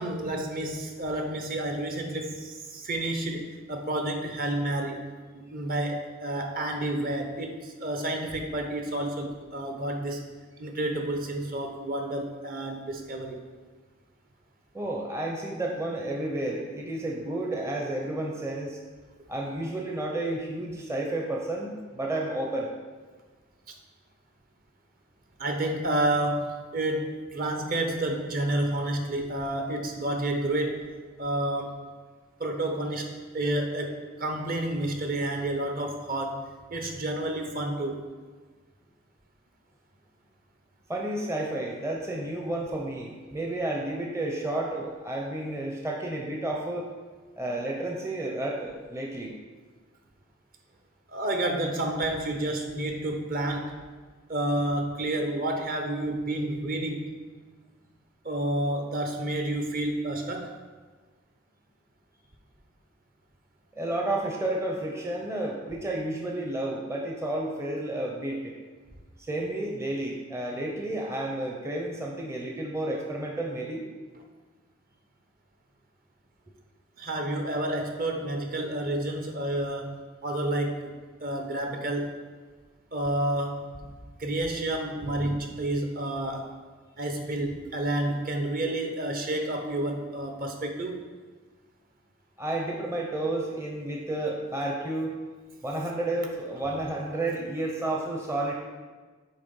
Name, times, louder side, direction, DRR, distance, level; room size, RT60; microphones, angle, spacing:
voice 1, 0.0-5.1 5.3-10.3 10.6-13.4 23.7-23.8 25.4-30.9 31.2-31.8 32.4-36.4 36.7-38.0 51.1-53.7 54.3-57.1 58.2-60.5 77.0-80.9 81.2-82.1 82.9-83.6 84.2-86.5 87.0-91.0, right 1 dB, 45° right, 4 dB, 0.8 m, -30 dB
voice 2, 14.7-18.8 19.3-22.7 40.9-46.9 47.4-49.3 63.7-68.5 69.2-73.9 92.4-95.2 95.6-98.5, right 1 dB, 15° right, -1 dB, 0.6 m, -31 dB
8.1 x 3.4 x 5.3 m, 1.4 s
head